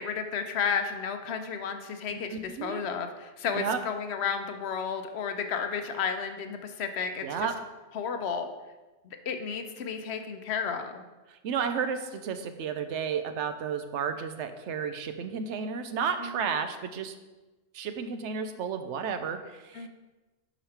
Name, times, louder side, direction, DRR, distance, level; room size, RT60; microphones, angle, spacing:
voice 1, 0.0-7.5 7.9-8.5 9.3-11.0 16.2-16.5 19.7-19.9, left 6 dB, 70° left, 7 dB, 0.9 m, -32 dB
voice 2, 2.1-2.9 3.5-3.8 7.2-7.5 11.3-17.1 17.7-19.9, right 6 dB, 85° right, 9 dB, 0.9 m, -32 dB
5.1 x 5.0 x 5.6 m, 1.2 s
omnidirectional pair, 1.2 m